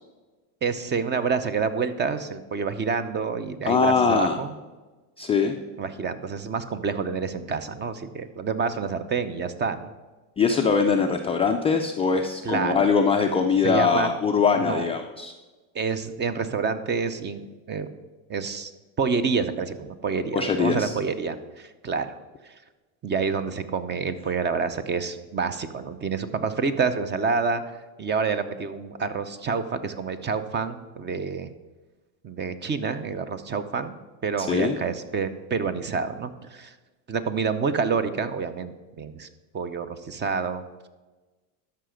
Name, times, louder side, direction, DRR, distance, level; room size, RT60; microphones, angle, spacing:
voice 1, 0.6-4.5 5.8-9.9 12.4-12.9 13.6-14.1 14.6-14.9 15.7-17.4 17.7-17.9 18.3-18.7 19.0-22.2 22.4-22.5 23.0-27.6 28.0-31.5 32.2-33.9 34.2-36.7 37.1-39.3 39.5-40.6, right 5 dB, 25° right, 12 dB, 0.6 m, -28 dB
voice 2, 3.7-4.4 5.2-5.5 10.4-15.3 20.3-20.9 34.4-34.8, left 5 dB, 15° left, 3 dB, 0.3 m, -22 dB
13.0 x 5.8 x 5.1 m, 1.2 s
supercardioid pair, 120°, 46 cm